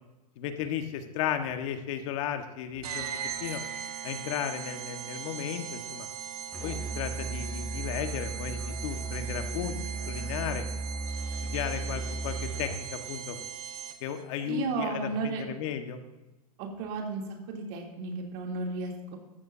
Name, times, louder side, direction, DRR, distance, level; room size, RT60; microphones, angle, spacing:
voice 1, 0.4-3.1 3.4-3.6 4.0-6.1 6.6-9.8 10.1-10.6 11.4-13.4 14.0-16.0, left 9 dB, 55° left, 6 dB, 1.5 m, -34 dB
sound 1, 2.8-14.2, right 9 dB, 85° right, 1.5 m, -39 dB
Musical instrument, 6.5-12.9, right 3 dB, 5° left, 0.8 m, -36 dB
voice 2, 14.4-15.4 16.6-19.2, right 3 dB, 50° right, 0 dB, 3.1 m, -34 dB
14.5 x 12.5 x 2.8 m, 1.1 s
hypercardioid pair, 130°, 19 cm